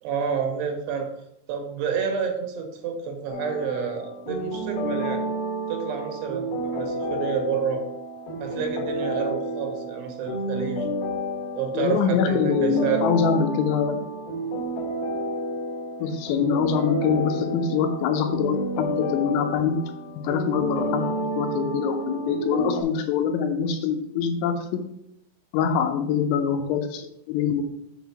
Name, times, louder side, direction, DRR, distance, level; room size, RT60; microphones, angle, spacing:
voice 1, 0.0-1.1 1.5-5.2 5.7-7.8 8.4-10.9 11.6-13.1, right 7 dB, 80° right, 4 dB, 3.3 m, -29 dB
sound 1, 3.3-22.8, right 1 dB, 65° left, 2.9 m, -30 dB
voice 2, 11.7-14.0 16.0-19.8 20.2-21.1 21.4-24.5 25.5-27.7, left 7 dB, 80° left, 6 dB, 3.0 m, -24 dB
7.3 x 3.7 x 5.9 m, 0.76 s
omnidirectional pair, 5.5 m